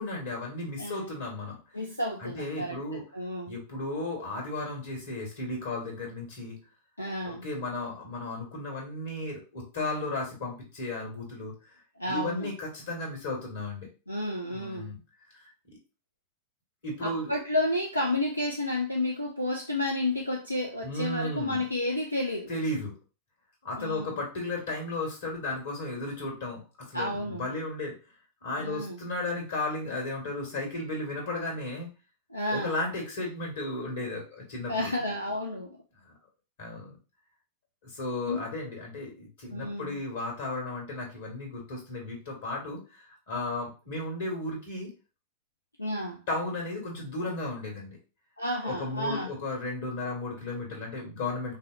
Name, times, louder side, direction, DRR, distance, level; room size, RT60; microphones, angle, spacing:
voice 1, 0.0-1.6 2.2-3.0 3.4-6.6 7.2-11.5 12.1-13.9 14.5-15.0 16.8-17.4 20.8-21.6 22.5-22.9 23.6-28.0 28.4-31.9 32.5-34.9 36.0-36.1 36.6-37.0 37.8-43.0 43.3-44.9 46.3-48.0 48.6-51.6, left 2 dB, 60° left, 2.1 m, -34 dB
voice 2, 0.8-1.1 1.7-3.5 7.0-7.4 12.0-12.5 14.1-14.9 17.0-22.5 23.8-24.2 26.9-27.5 28.6-29.0 32.3-32.7 34.7-35.8 38.3-38.4 39.5-40.0 45.8-46.2 48.4-49.3, left 1 dB, 85° left, 0.5 m, -31 dB
5.3 x 2.1 x 2.7 m
figure-of-eight pair, 90°, 0 cm